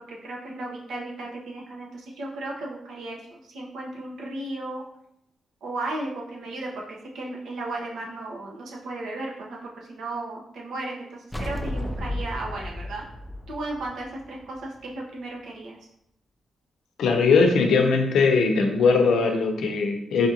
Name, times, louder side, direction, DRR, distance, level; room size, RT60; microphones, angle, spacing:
voice 1, 0.1-4.8 5.6-13.0 13.5-15.8, right 2 dB, 75° right, -2 dB, 0.9 m, -35 dB
sound 1, 11.3-14.8, left 1 dB, 5° left, 0.3 m, -33 dB
voice 2, 17.0-20.3, left 4 dB, 80° left, 4 dB, 0.6 m, -20 dB
5.3 x 2.4 x 2.8 m, 0.78 s
wide cardioid pair, 165°, 0 cm